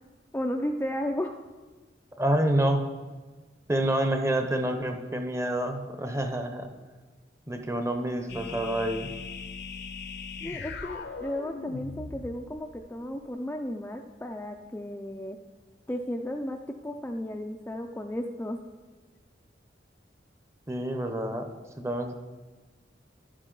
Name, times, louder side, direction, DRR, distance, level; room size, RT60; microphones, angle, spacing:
voice 1, 0.3-1.4 10.4-15.4 15.9-16.6 16.8-18.6, left 1 dB, 10° left, 2 dB, 0.4 m, -34 dB
voice 2, 2.2-2.9 3.7-6.7 7.5-9.1 20.7-21.5 21.8-22.1, right 1 dB, 15° right, 6 dB, 0.7 m, -28 dB
sound 1, 8.3-12.9, left 4 dB, 65° left, 0.7 m, -39 dB
11.0 x 9.7 x 3.8 m, 1.3 s
head